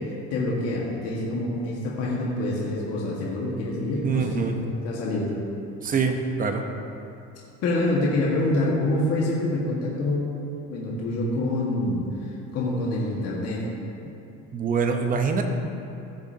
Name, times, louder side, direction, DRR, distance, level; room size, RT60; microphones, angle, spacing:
voice 1, 0.0-4.5 4.8-5.3 7.6-10.3 10.7-13.6, left 1 dB, 55° left, -4 dB, 1.7 m, -26 dB
voice 2, 4.0-4.6 5.8-6.6 14.5-15.4, right 5 dB, 30° right, 4 dB, 0.9 m, -24 dB
15.5 x 6.8 x 2.9 m, 2.9 s
cardioid pair, 140°, 29 cm